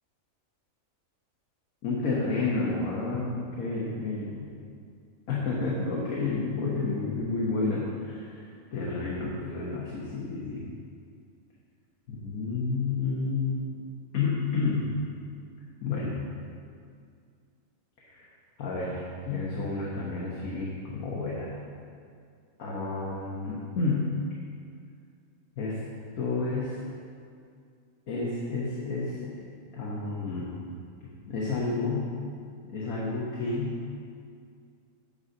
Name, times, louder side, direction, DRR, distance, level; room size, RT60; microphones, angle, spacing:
voice 1, 1.8-4.5 5.3-10.7 12.1-13.6 14.1-14.9 15.8-16.2 18.0-18.3 18.6-21.5 22.6-24.1 25.6-25.8 26.2-26.9 28.1-29.5 29.7-30.5 31.3-32.1 32.7-33.8, left 3 dB, 85° left, -5 dB, 1.6 m, -30 dB
10.5 x 4.2 x 6.5 m, 2.3 s
omnidirectional pair, 1.4 m